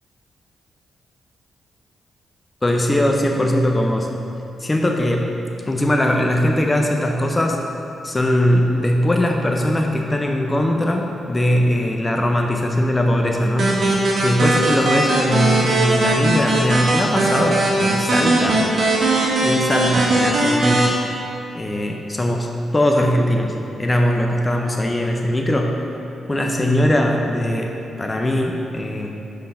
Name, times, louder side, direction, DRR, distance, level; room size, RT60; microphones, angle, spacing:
voice 1, 2.6-4.1 4.6-5.4 5.7-7.6 8.0-13.7 14.2-18.7 19.4-21.0 21.5-25.8 26.3-29.2, left 1 dB, 25° left, 2 dB, 0.6 m, -20 dB
sound 1, 13.6-20.9, right 2 dB, 60° right, 1.3 m, -19 dB
5.4 x 3.8 x 5.7 m, 2.8 s
cardioid pair, 65°, 0 cm